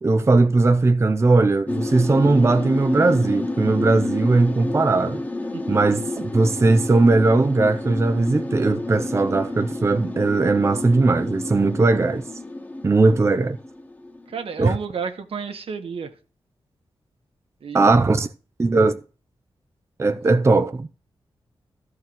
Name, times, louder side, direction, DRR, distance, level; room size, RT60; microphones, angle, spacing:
voice 1, 0.0-5.2 5.7-12.3 12.8-13.6 14.6-14.8 17.7-18.3 18.6-19.0 20.0-20.9, right 3 dB, 30° right, 0.6 m, -19 dB
sound 1, 1.7-14.5, left 2 dB, 20° left, 1.4 m, -30 dB
voice 2, 14.3-16.1 17.6-18.0, right 5 dB, 80° right, 1.6 m, -31 dB
14.0 x 4.8 x 7.8 m
wide cardioid pair, 115°, 10 cm